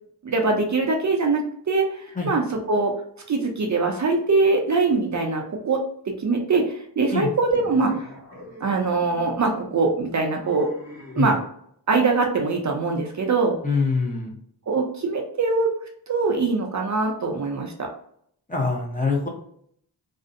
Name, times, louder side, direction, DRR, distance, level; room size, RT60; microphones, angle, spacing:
voice 1, 0.2-2.9 3.3-5.8 6.2-8.0 8.6-10.7 11.1-11.4 11.9-13.6 14.7-15.7 16.1-17.9, right 3 dB, 45° right, 2 dB, 0.5 m, -22 dB
sound 1, 7.5-11.5, left 1 dB, 40° left, 1.2 m, -43 dB
voice 2, 13.6-14.3 18.5-19.3, left 4 dB, 20° left, -2 dB, 0.6 m, -24 dB
2.5 x 2.0 x 2.5 m, 0.66 s
wide cardioid pair, 105°, 41 cm